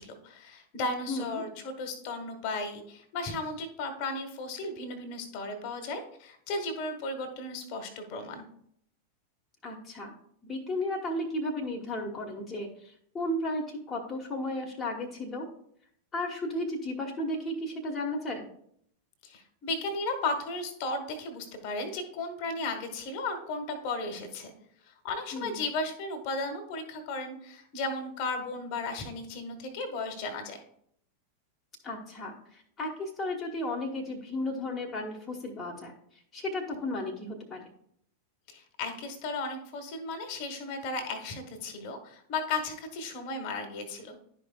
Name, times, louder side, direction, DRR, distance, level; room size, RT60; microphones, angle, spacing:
voice 1, 0.0-8.5 19.2-24.5 24.8-30.6 38.5-44.2, left 3 dB, 45° left, 6 dB, 1.2 m, -35 dB
voice 2, 1.1-1.4 9.6-10.1 10.4-15.5 16.1-18.5 25.3-25.6 31.8-35.9 36.3-37.6, left 1 dB, 20° left, 0 dB, 1.1 m, -34 dB
11.5 x 5.1 x 2.2 m, 0.68 s
figure-of-eight pair, 90°, 0 cm